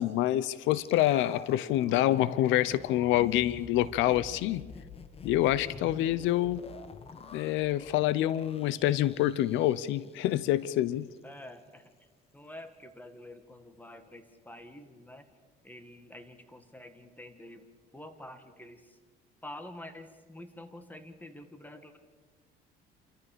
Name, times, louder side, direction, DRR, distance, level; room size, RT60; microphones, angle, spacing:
voice 1, 0.0-4.6 5.2-6.6 7.3-11.1, left 13 dB, 80° left, 18 dB, 0.8 m, -27 dB
sound 1, 0.7-10.8 11.1-11.2, left 5 dB, 30° left, 1.3 m, -48 dB
voice 2, 5.5-5.9 11.2-11.9 12.3-15.3 15.6-19.0 19.4-22.0, left 1 dB, 10° left, 8 dB, 2.0 m, -48 dB
28.0 x 14.0 x 6.9 m, 1.4 s
cardioid pair, 115°, 19 cm